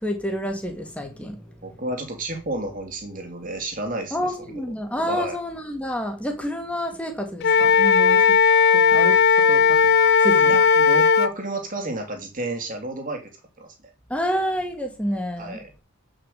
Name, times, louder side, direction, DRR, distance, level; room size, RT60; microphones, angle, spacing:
voice 1, 0.0-1.5 4.1-8.4 8.7-9.2 9.5-9.8 10.2-10.6 14.1-15.6, equal, 5° left, 2.2 m, -29 dB
voice 2, 1.6-4.6 5.1-5.4 10.4-13.3 13.6-13.9 15.4-15.7, right 2 dB, 40° right, 3.1 m, -31 dB
Wind instrument woodwind instrument, 7.4-11.3, left 6 dB, 50° left, 0.4 m, -16 dB
9.0 x 6.5 x 6.7 m
head